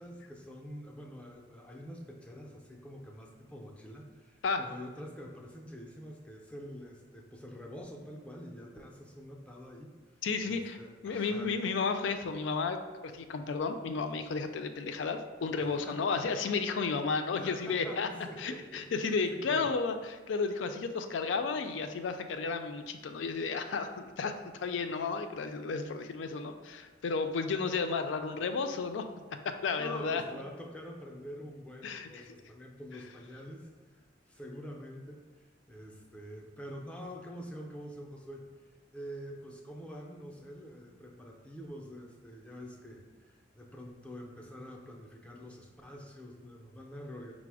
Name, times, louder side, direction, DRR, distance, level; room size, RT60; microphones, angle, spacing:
voice 1, 0.0-10.2 10.4-11.5 15.6-16.4 17.3-19.7 29.8-38.6 38.9-47.3, equal, 5° left, -1 dB, 0.5 m, -46 dB
voice 2, 10.2-10.8 11.0-12.8 13.0-18.1 18.4-20.0 20.3-29.0 29.4-30.2 31.8-32.2, left 4 dB, 75° left, 7 dB, 0.4 m, -33 dB
4.9 x 2.0 x 4.6 m, 1.4 s
head